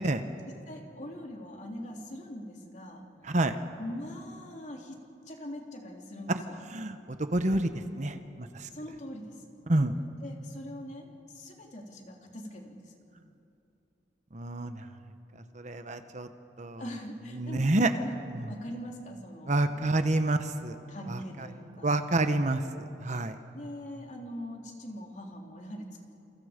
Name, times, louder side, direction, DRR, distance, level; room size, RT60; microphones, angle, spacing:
voice 1, 0.7-3.0 3.8-5.0 5.2-6.6 8.7-9.5 10.2-13.0 16.8-18.2 18.5-19.9 20.2-20.3 20.9-22.0 23.5-26.0, equal, 45° left, 0 dB, 3.4 m, -42 dB
voice 2, 6.7-8.7 9.7-9.9 14.3-14.8 15.5-16.3 16.6-16.8 17.4-17.9 19.5-20.7 21.1-21.2 21.8-22.6 23.0-23.3, right 2 dB, 45° right, 8 dB, 1.1 m, -28 dB
29.5 x 28.0 x 5.2 m, 2.7 s
head